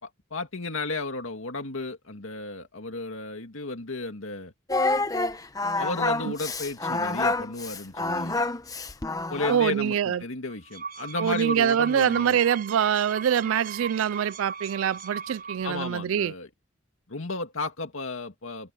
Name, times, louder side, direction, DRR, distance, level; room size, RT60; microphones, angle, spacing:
voice 1, 0.0-4.5 5.8-8.4 9.3-12.4 15.6-16.5 17.1-18.7, left 3 dB, 85° left, 2.2 m, -33 dB
Singing, 4.7-9.8, left 2 dB, 20° left, 1.0 m, -28 dB
voice 2, 9.5-10.2 11.2-16.3, right 8 dB, 85° right, 0.3 m, -24 dB
sound 1, 10.5-15.9, right 6 dB, 45° right, 4.9 m, -37 dB
head